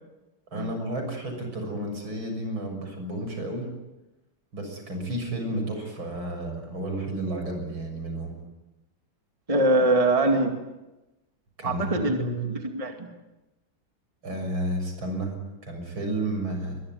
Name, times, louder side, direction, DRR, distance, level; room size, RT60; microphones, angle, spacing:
voice 1, 0.5-3.7 4.5-8.3 11.6-12.4 14.2-16.8, right 1 dB, 75° right, 4 dB, 7.4 m, -31 dB
voice 2, 9.5-10.5 11.6-12.2 12.5-13.1, right 2 dB, 15° right, 4 dB, 2.3 m, -23 dB
23.5 x 22.0 x 9.5 m, 1.0 s
omnidirectional pair, 2.2 m